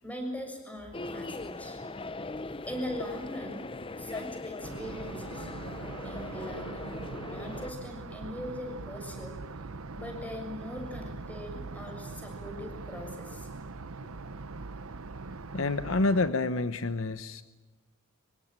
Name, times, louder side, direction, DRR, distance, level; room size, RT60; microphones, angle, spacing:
voice 1, 0.0-1.8 2.6-3.6 4.0-5.5 6.0-7.0 7.3-9.4 9.9-13.5, left 1 dB, 5° left, 3 dB, 6.6 m, -40 dB
sound 1, 0.9-7.7, left 2 dB, 25° left, 0.8 m, -40 dB
sound 2, 4.6-16.3, right 3 dB, 80° right, 0.9 m, -42 dB
voice 2, 15.5-17.4, left 3 dB, 65° left, 11 dB, 0.9 m, -28 dB
25.5 x 23.5 x 9.0 m, 1.2 s
head